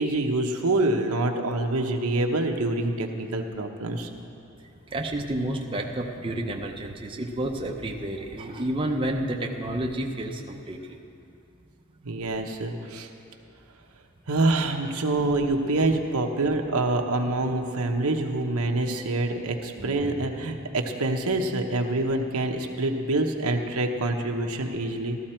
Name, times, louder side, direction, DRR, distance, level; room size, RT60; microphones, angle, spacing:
voice 1, 0.0-4.1 12.0-13.1 14.3-25.2, right 2 dB, 85° right, 3 dB, 1.0 m, -26 dB
voice 2, 4.9-11.0 19.8-20.2, right 1 dB, 25° right, 1 dB, 0.7 m, -30 dB
14.5 x 13.5 x 4.4 m, 2.7 s
head